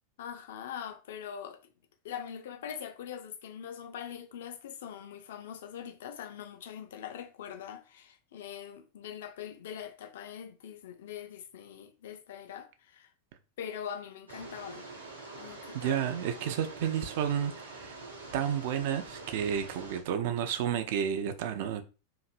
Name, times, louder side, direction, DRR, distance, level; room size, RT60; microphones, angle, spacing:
voice 1, 0.2-1.7 2.0-13.1 13.6-14.9 15.4-16.0, left 9 dB, 55° left, 0.4 m, -42 dB
sound 1, 14.3-20.0, right 3 dB, 80° right, 0.8 m, -45 dB
voice 2, 15.7-18.0 18.3-21.8, right 9 dB, 50° right, 0.4 m, -31 dB
2.9 x 2.5 x 2.5 m
figure-of-eight pair, 90°, 0 cm